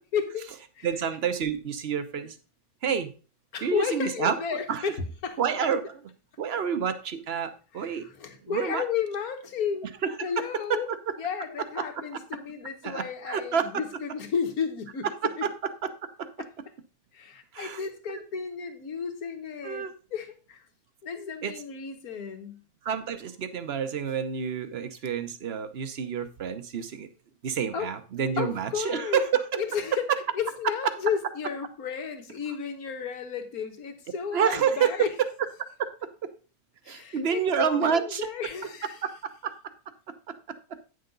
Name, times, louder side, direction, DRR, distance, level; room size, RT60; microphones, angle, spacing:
voice 1, 0.1-0.5 0.8-0.9 3.5-5.4 7.7-9.9 10.2-10.9 11.2-15.1 17.1-20.6 21.0-22.6 27.7-27.9 28.4-29.2 29.5-30.0 30.4-35.1 36.8-38.9, left 7 dB, 75° left, 6 dB, 1.7 m, -33 dB
voice 2, 0.8-2.4 2.8-3.1 3.6-4.8 5.4-6.0 6.4-8.1 8.4-8.8 10.0-10.8 12.8-13.8 15.0-15.5 15.8-15.9 16.2-16.3 17.5-17.8 18.1-18.2 19.6-19.9 21.4-21.6 22.8-27.1 27.4-29.6 34.3-35.3 35.8-35.9 36.9-38.3 39.0-39.5, right 7 dB, 50° right, 10 dB, 1.0 m, -28 dB
9.3 x 6.7 x 3.9 m, 0.35 s
omnidirectional pair, 1.6 m